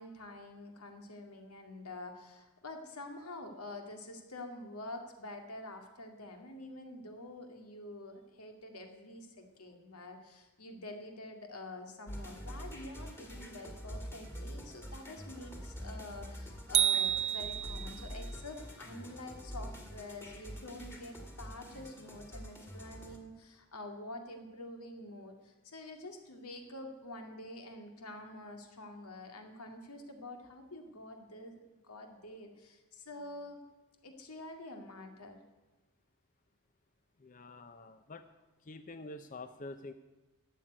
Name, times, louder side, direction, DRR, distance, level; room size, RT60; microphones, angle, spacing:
voice 1, 0.0-33.6 34.0-35.4, left 2 dB, 90° left, 4 dB, 2.2 m, -47 dB
sound 1, 12.1-23.2, equal, 10° left, 1.8 m, -46 dB
sound 2, 16.7-18.1, right 10 dB, 30° right, 0.4 m, -30 dB
voice 2, 37.2-38.2 38.6-39.9, left 2 dB, 35° left, 9 dB, 0.5 m, -47 dB
12.5 x 7.5 x 9.8 m, 1.1 s
head